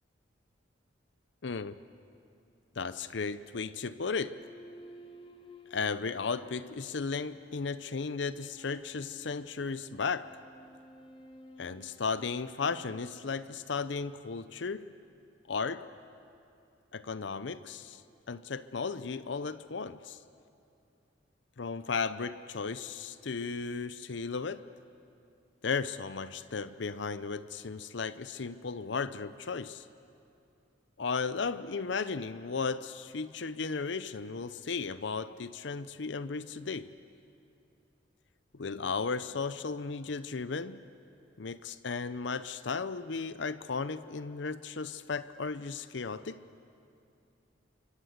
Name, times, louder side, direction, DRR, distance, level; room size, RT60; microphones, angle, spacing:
voice 1, 1.4-1.8 2.8-4.4 5.7-10.3 11.6-14.9 15.5-15.9 16.9-18.0 18.3-20.2 21.6-24.7 25.6-29.8 31.0-36.9 38.6-40.8 41.4-46.4, left 4 dB, 65° left, 14 dB, 0.6 m, -35 dB
sound 1, 4.2-13.8, left 1 dB, 25° left, 1.6 m, -55 dB
28.5 x 24.5 x 8.1 m, 2.7 s
head